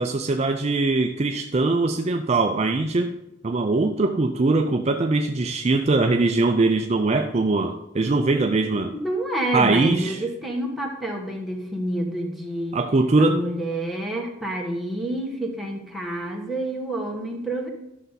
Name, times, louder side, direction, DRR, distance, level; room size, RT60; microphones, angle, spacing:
voice 1, 0.0-3.1 3.4-8.9 9.5-10.2 12.7-13.4, right 3 dB, 35° right, 5 dB, 0.4 m, -21 dB
voice 2, 9.0-12.8 13.2-17.7, right 1 dB, ahead, -2 dB, 1.4 m, -28 dB
11.5 x 6.7 x 4.1 m, 0.86 s
head